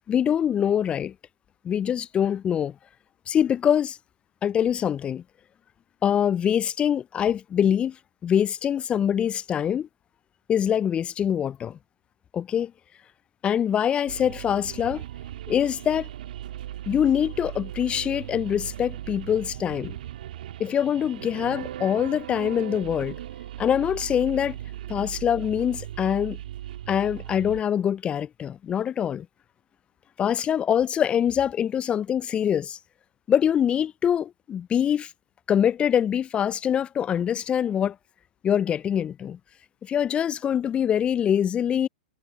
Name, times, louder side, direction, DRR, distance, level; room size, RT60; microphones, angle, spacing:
voice 1, 0.1-1.1 1.6-2.7 3.3-4.0 4.4-5.2 6.0-8.0 8.2-9.9 10.5-11.8 12.3-12.7 13.4-15.0 15.5-16.1 16.9-20.0 20.6-23.2 23.6-24.6 24.9-26.4 26.9-29.3 30.2-32.8 33.3-35.1 35.5-38.0 38.4-39.4 39.8-41.9, left 9 dB, 20° left, 0.4 m, -24 dB
sound 1, 14.1-27.6, right 12 dB, 65° right, 1.8 m, -38 dB
hypercardioid pair, 110°, 5 cm